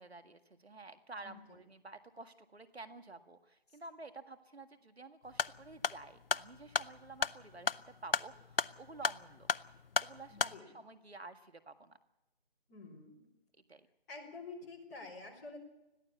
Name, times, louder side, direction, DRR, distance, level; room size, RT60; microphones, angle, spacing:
voice 1, 0.0-9.5 10.0-12.0 13.7-13.9, right 3 dB, 80° right, 8 dB, 1.9 m, -51 dB
voice 2, 1.2-1.6 3.7-3.8 10.3-10.8 12.7-13.3 14.1-15.6, left 3 dB, 15° left, -4 dB, 3.5 m, -49 dB
sound 1, 5.3-10.6, left 5 dB, 65° left, 0.7 m, -36 dB
21.0 x 14.5 x 8.5 m, 0.94 s
figure-of-eight pair, 165°, 31 cm